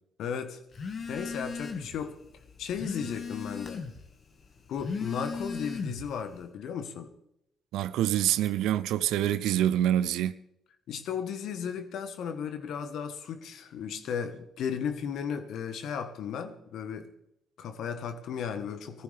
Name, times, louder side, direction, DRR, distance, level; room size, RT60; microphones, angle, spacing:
voice 1, 0.2-0.6 1.1-2.1 2.6-3.9 4.7-7.1 10.9-17.1 17.6-19.0, left 7 dB, 70° left, 1.4 m, -35 dB
Telephone, 0.7-2.0 2.4-4.0 4.7-6.2, left 5 dB, 50° left, 1.9 m, -36 dB
voice 2, 7.7-10.3, right 12 dB, 75° right, 0.6 m, -26 dB
19.5 x 14.5 x 3.5 m
hypercardioid pair, 50°, 0 cm